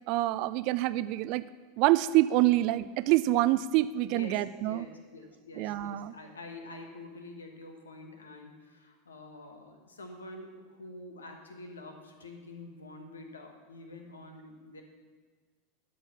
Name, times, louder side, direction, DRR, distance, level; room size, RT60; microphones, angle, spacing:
voice 1, 0.1-1.5 1.8-4.9 5.6-6.1, right 16 dB, 50° right, 15 dB, 0.3 m, -26 dB
voice 2, 4.1-14.8, left 2 dB, 75° left, 4 dB, 1.2 m, -47 dB
12.5 x 5.4 x 5.7 m, 1.4 s
figure-of-eight pair, 80°, 0 cm